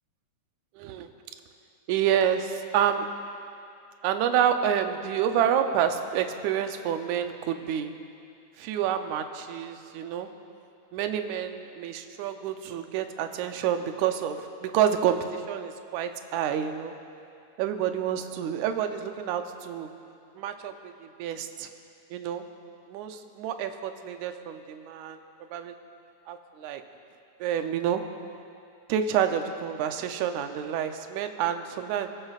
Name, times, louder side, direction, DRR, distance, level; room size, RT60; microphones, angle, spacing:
voice 1, 0.8-1.1 1.9-3.1 4.0-7.9 8.6-10.3 10.9-16.9 17.6-19.9 20.4-21.7 22.1-22.5 22.9-25.2 25.5-25.7 26.3-26.8 27.4-28.0 28.9-32.1, right 9 dB, 75° right, 7 dB, 1.9 m, -28 dB
23.5 x 14.5 x 2.4 m, 2.5 s
omnidirectional pair, 3.7 m